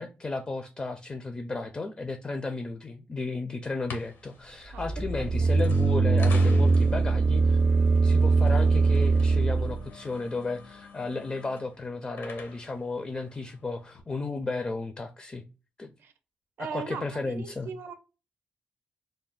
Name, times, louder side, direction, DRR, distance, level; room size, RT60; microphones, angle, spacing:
voice 1, 0.0-7.6 8.0-15.4 15.8-15.9 16.6-17.7, left 3 dB, 30° left, 0.4 m, -34 dB
sound 1, 3.7-14.0, left 4 dB, 80° left, 0.9 m, -47 dB
sound 2, 4.7-9.8, right 4 dB, 30° right, 0.4 m, -22 dB
voice 2, 4.7-5.0 5.4-5.5 16.0-16.1 16.6-18.0, right 6 dB, 85° right, 0.5 m, -39 dB
3.2 x 2.1 x 3.8 m
cardioid pair, 90°, 4 cm